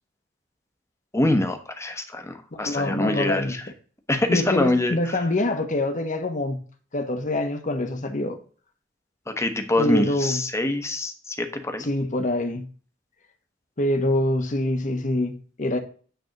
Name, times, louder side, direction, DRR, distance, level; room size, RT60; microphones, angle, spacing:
voice 1, 1.1-3.6 4.1-4.9 9.4-11.9, left 1 dB, 15° left, 0.9 m, -24 dB
voice 2, 2.6-3.5 4.3-6.6 6.9-8.4 9.8-10.4 11.8-12.7 13.8-15.8, left 1 dB, 40° left, 1.1 m, -25 dB
9.1 x 3.5 x 6.4 m
head